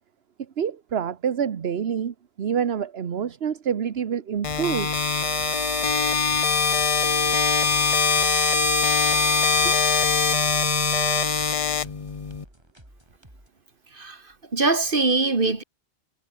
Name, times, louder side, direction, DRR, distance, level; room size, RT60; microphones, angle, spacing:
voice 1, 0.6-4.9 9.6-9.7, right 8 dB, 75° right, 1.3 m, -27 dB
sound 1, 4.3-13.5, right 1 dB, 25° right, 7.4 m, -52 dB
sound 2, 4.4-12.4, left 5 dB, 35° left, 0.9 m, -22 dB
voice 2, 13.9-15.6, right 3 dB, 55° right, 2.6 m, -23 dB
omnidirectional pair, 1.1 m